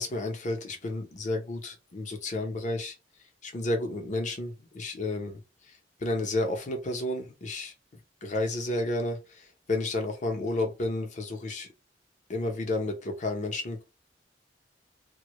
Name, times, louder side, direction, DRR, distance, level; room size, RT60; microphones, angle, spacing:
voice 1, 0.0-2.9 3.4-5.4 6.0-7.7 8.2-11.7 12.3-13.8, left 2 dB, 45° left, 0.7 m, -31 dB
2.2 x 2.0 x 2.9 m
head